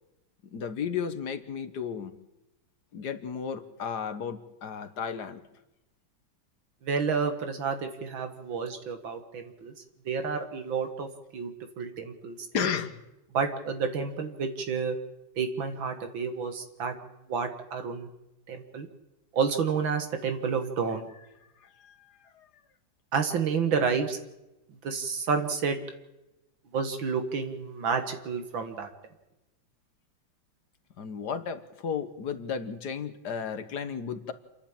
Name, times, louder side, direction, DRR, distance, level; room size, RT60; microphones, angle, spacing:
voice 1, 0.5-2.1 2.9-5.4 12.5-13.0 21.6-22.5 31.0-34.3, left 7 dB, 60° left, 10 dB, 1.7 m, -34 dB
voice 2, 6.8-9.7 10.1-11.1 11.3-12.4 13.3-15.0 15.4-16.9 17.3-18.1 18.5-18.9 19.3-21.1 23.1-24.2 24.8-25.8 26.7-28.9, right 5 dB, 75° right, 7 dB, 2.4 m, -30 dB
28.0 x 10.5 x 8.8 m, 0.96 s
omnidirectional pair, 2.2 m